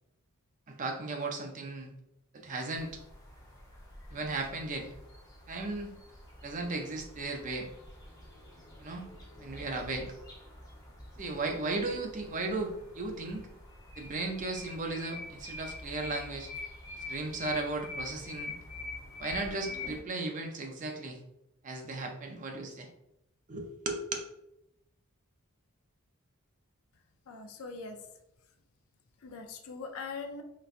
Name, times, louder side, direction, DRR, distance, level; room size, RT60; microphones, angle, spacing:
voice 1, 0.7-1.9 2.3-3.0 4.1-4.9 5.5-5.9 6.4-7.7 8.8-9.1 9.4-10.1 11.2-13.4 14.0-16.5 16.9-18.5 19.2-21.2 21.6-22.9 23.5-24.0, right 3 dB, 35° right, 3 dB, 0.4 m, -36 dB
sound 1, 2.7-20.0, left 2 dB, 15° left, 0.8 m, -46 dB
voice 2, 27.3-28.0 29.2-30.4, left 4 dB, 70° left, 5 dB, 0.5 m, -41 dB
4.0 x 2.2 x 2.4 m, 0.83 s
head